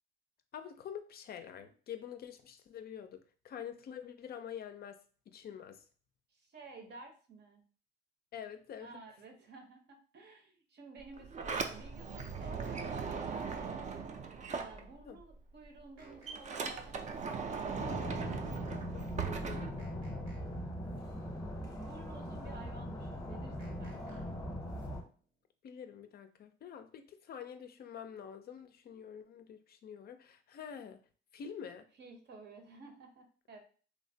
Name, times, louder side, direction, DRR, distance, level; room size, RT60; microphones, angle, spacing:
voice 1, 0.5-5.0 5.3-5.8 8.3-8.9 15.1-15.2 18.8-20.1 25.6-31.0 31.3-31.9, left 8 dB, 50° left, 8 dB, 0.4 m, -47 dB
voice 2, 6.3-7.6 8.8-17.9 21.8-24.3 32.0-33.6, right 3 dB, 60° right, 4 dB, 0.8 m, -53 dB
Sliding door, 11.0-15.3 15.6-20.4, right 5 dB, 35° right, 0.4 m, -39 dB
sound 1, 12.2-13.9 16.0-17.6 19.8-21.3 23.6-25.2, right 3 dB, 90° right, 0.8 m, -55 dB
sound 2, 17.7-25.0, equal, 15° left, 0.7 m, -41 dB
3.1 x 2.1 x 2.6 m, 0.40 s
cardioid pair, 90°, 20 cm